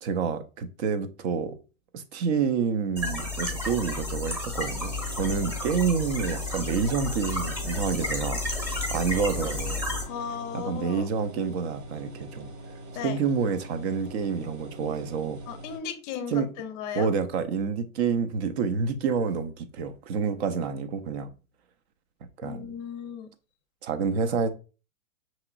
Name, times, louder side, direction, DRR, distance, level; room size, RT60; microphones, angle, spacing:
voice 1, 0.0-1.6 1.9-9.8 10.5-12.5 13.0-15.4 16.3-16.5 16.9-21.3 22.4-22.7 23.8-24.5, right 6 dB, 50° right, 0.7 m, -28 dB
sound 1, 3.0-10.0, left 2 dB, 5° right, 1.0 m, -32 dB
sound 2, 4.6-15.8, right 1 dB, 65° right, 1.0 m, -44 dB
voice 2, 10.0-11.1 12.9-13.2 15.5-17.1 22.4-23.3, left 8 dB, 30° left, 0.5 m, -36 dB
5.6 x 3.0 x 2.3 m
hypercardioid pair, 125°, 42 cm